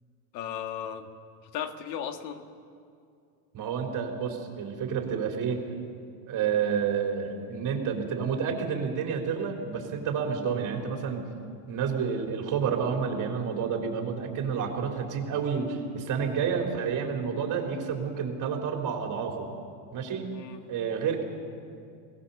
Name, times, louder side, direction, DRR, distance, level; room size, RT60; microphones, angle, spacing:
voice 1, 0.3-1.1 1.5-2.4 20.3-20.6, left 9 dB, 85° left, 7 dB, 1.7 m, -35 dB
voice 2, 3.5-5.7 6.3-11.2 11.6-19.5 19.9-20.4 20.7-21.2, right 6 dB, 40° right, 2 dB, 3.8 m, -29 dB
22.0 x 18.5 x 7.1 m, 2.4 s
supercardioid pair, 130°, 49 cm